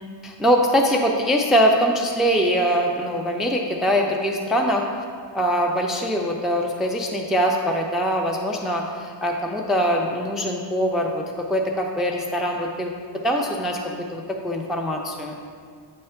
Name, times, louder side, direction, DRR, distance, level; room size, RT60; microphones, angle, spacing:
voice 1, 0.2-4.9 5.3-12.9 13.2-13.8 14.1-15.3, equal, ahead, 1 dB, 0.4 m, -22 dB
8.6 x 3.3 x 5.7 m, 2.1 s
wide cardioid pair, 135°, 46 cm